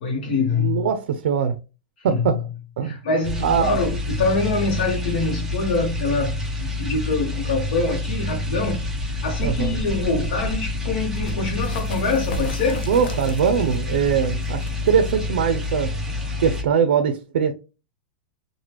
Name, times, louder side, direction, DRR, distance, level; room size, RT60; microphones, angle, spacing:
voice 1, 0.0-0.9 2.0-2.3 2.8-12.9, left 3 dB, 60° left, 0.8 m, -25 dB
voice 2, 0.6-1.6 2.0-2.5 2.8-3.0 3.4-3.7 9.4-9.8 12.9-15.9 16.4-17.5, right 7 dB, 90° right, 0.4 m, -21 dB
sound 1, 3.2-16.6, left 2 dB, 5° right, 0.5 m, -28 dB
sound 2, 11.0-16.4, left 3 dB, 90° left, 0.7 m, -40 dB
3.3 x 2.1 x 2.9 m
supercardioid pair, 175°, 6 cm